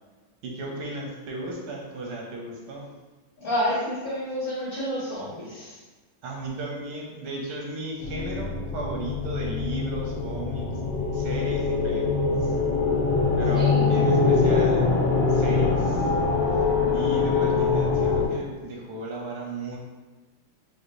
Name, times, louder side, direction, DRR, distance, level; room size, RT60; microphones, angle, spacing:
voice 1, 0.4-2.9 6.2-10.7 11.1-12.1 12.4-12.6 13.4-14.9 15.3-16.1 16.9-19.8, right 2 dB, 85° right, -1 dB, 1.5 m, -35 dB
voice 2, 3.4-5.8 13.5-13.8, equal, 50° left, -7 dB, 1.1 m, -29 dB
sound 1, 8.0-18.3, left 4 dB, 70° left, 1.4 m, -23 dB
4.6 x 2.1 x 2.6 m, 1.3 s
omnidirectional pair, 2.4 m